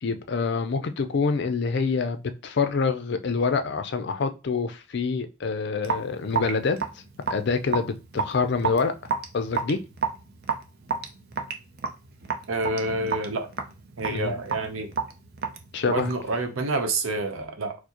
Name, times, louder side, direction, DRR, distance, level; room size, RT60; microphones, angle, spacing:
voice 1, 0.0-6.8 7.3-8.9 9.3-9.8 14.1-14.3 15.7-16.1, left 4 dB, 55° left, 0.4 m, -26 dB
Raindrop / Drip, 5.8-16.4, right 5 dB, 50° right, 0.5 m, -31 dB
voice 2, 12.5-13.5 14.0-14.9 15.9-17.8, right 2 dB, 80° right, 0.7 m, -28 dB
4.5 x 2.1 x 2.9 m
head